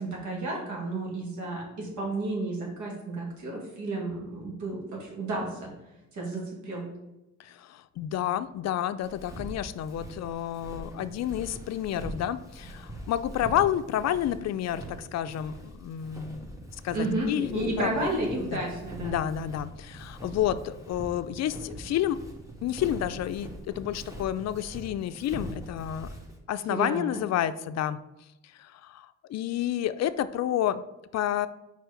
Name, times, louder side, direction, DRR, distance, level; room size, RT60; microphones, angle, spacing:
voice 1, 0.0-5.7 6.1-6.9 16.9-19.2 26.7-27.2, right 2 dB, 75° right, -2 dB, 2.3 m, -32 dB
voice 2, 7.4-16.5 16.8-17.9 18.4-18.6 19.0-22.2 22.6-23.5 23.8-26.1 26.5-28.0 28.5-30.8 31.1-31.5, left 11 dB, 60° left, 13 dB, 0.4 m, -30 dB
Walk footsteps, 9.0-26.4, right 1 dB, 10° right, 1.4 m, -42 dB
4.7 x 4.6 x 5.1 m, 0.96 s
cardioid pair, 90°, 30 cm